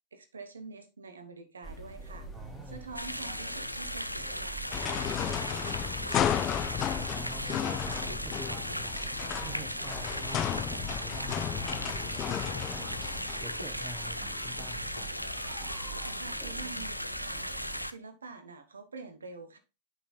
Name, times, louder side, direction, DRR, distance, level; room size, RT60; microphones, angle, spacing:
voice 1, 0.1-2.3 2.7-6.6 16.0-17.5 17.8-19.6, right 4 dB, 70° right, 8 dB, 1.2 m, -47 dB
sound 1, 1.6-17.9, right 1 dB, 5° left, 2.7 m, -45 dB
voice 2, 2.3-2.8 7.0-9.0 9.4-13.0 13.4-15.1, right 2 dB, 20° right, 5 dB, 1.1 m, -46 dB
sound 2, 3.0-17.9, equal, 90° left, 0.4 m, -37 dB
sound 3, 4.7-16.1, left 10 dB, 30° left, 0.5 m, -34 dB
9.8 x 5.7 x 2.3 m, 0.29 s
figure-of-eight pair, 90°, 0 cm